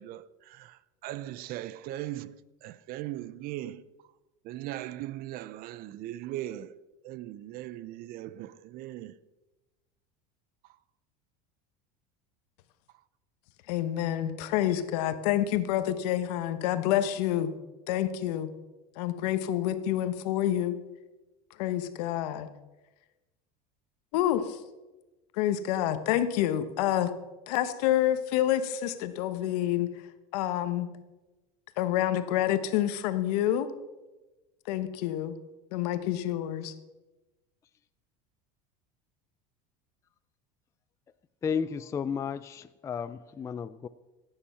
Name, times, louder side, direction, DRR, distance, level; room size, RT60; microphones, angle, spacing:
voice 1, 0.0-3.8 4.4-6.8 7.0-9.2 10.6-10.8, right 14 dB, 50° right, 0.6 m, -39 dB
voice 2, 13.7-17.5 17.9-18.5 19.0-20.8 21.6-22.5 24.1-24.6 25.3-27.1 27.5-29.9 30.3-30.9 31.8-33.7 34.7-35.3 35.7-36.7, left 12 dB, 75° left, 1.2 m, -28 dB
voice 3, 41.4-43.9, left 6 dB, 15° left, 0.3 m, -33 dB
16.0 x 8.8 x 5.7 m
supercardioid pair, 135°, 20 cm